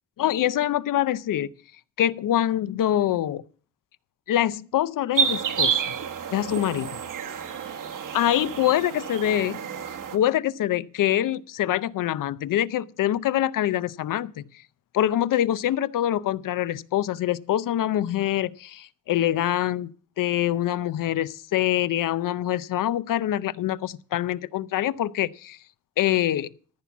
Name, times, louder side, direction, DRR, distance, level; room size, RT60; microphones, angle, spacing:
voice 1, 0.2-1.5 2.0-3.4 4.3-5.8 6.3-7.0 8.1-9.6 10.1-14.4 14.9-19.9 20.2-25.6 26.0-26.5, left 12 dB, 85° left, 0.6 m, -25 dB
sound 1, 5.1-10.2, right 6 dB, 75° right, 1.3 m, -29 dB
14.0 x 6.0 x 7.1 m
wide cardioid pair, 140°, 32 cm